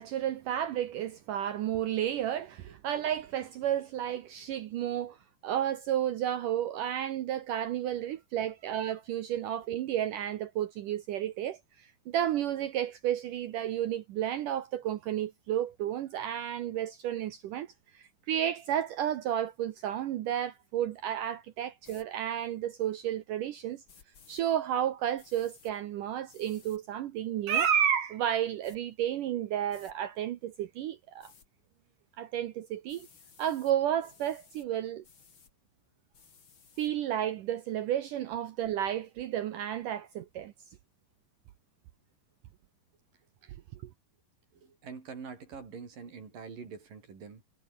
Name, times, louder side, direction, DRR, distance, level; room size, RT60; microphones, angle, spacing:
voice 1, 0.0-5.2 5.4-17.7 17.9-23.8 24.3-31.3 32.2-33.1 33.4-35.0 36.8-40.5, right 10 dB, 80° right, 1.9 m, -32 dB
sound 1, 21.8-22.1 23.9-24.4 25.2-25.7 26.3-26.8 27.5-27.7 28.3-28.8 29.7-29.9 31.2-31.5 32.9-33.7 34.0-34.7 35.0-35.5 36.1-36.9, left 6 dB, 35° left, 2.8 m, -58 dB
voice 2, 44.5-47.4, right 5 dB, 50° right, 6.0 m, -45 dB
omnidirectional pair, 5.2 m